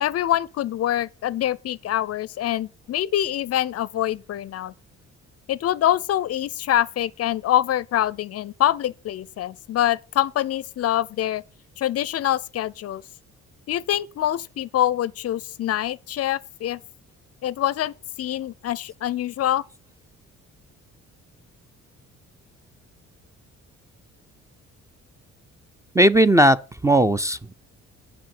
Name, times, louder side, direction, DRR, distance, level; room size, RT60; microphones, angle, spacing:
voice 1, 0.0-4.7 5.5-11.4 11.8-13.0 13.7-16.8 17.4-19.6, left 12 dB, 55° left, 0.4 m, -25 dB
voice 2, 25.9-26.6 26.8-27.5, right 1 dB, 10° right, 0.4 m, -16 dB
7.5 x 5.3 x 7.3 m
cardioid pair, 90°, 30 cm